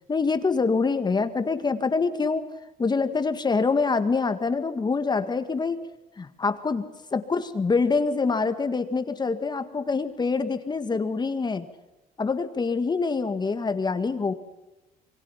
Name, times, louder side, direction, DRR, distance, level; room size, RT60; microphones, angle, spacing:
voice 1, 0.1-2.5 2.8-5.8 6.2-6.9 7.1-11.7 12.2-14.3, left 4 dB, 25° left, 9 dB, 1.8 m, -25 dB
27.5 x 23.5 x 5.8 m, 1.0 s
cardioid pair, 110°, 17 cm